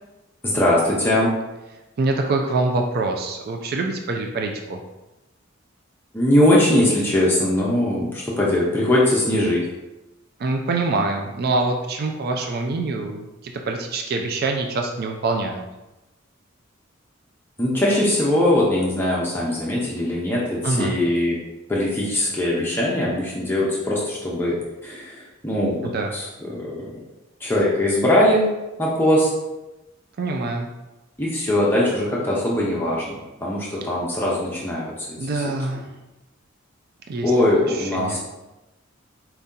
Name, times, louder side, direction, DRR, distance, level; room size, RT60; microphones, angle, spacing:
voice 1, 0.4-1.4 6.1-9.6 17.6-21.4 21.7-27.0 27.4-28.5 28.8-29.3 31.2-35.1 35.3-35.4 37.2-38.2, left 1 dB, 10° left, -6 dB, 0.6 m, -21 dB
voice 2, 2.0-4.8 10.4-15.6 20.6-20.9 25.8-26.1 30.2-30.7 35.2-35.9 37.1-37.3 37.7-38.2, right 3 dB, 50° right, 3 dB, 0.4 m, -25 dB
4.4 x 2.8 x 3.7 m, 1.0 s
head